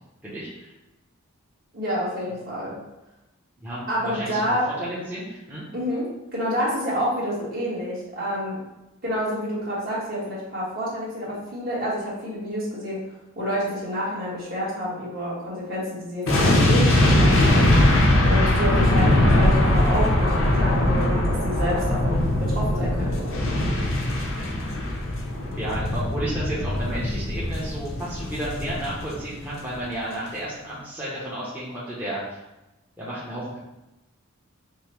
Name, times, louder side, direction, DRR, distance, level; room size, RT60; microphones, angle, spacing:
voice 1, 0.2-0.7 3.6-4.4 4.8-5.6 24.5-24.8 25.5-32.4 33.0-33.6, right 1 dB, 10° right, -9 dB, 0.7 m, -32 dB
voice 2, 1.7-2.8 3.9-4.7 5.7-6.1 6.3-8.6 9.0-13.0 13.3-17.7 18.2-23.4, equal, 45° right, -7 dB, 1.4 m, -28 dB
sound 1, 16.3-29.4 29.7-29.9, left 1 dB, 65° left, 0.6 m, -21 dB
5.3 x 2.1 x 3.0 m, 0.98 s
head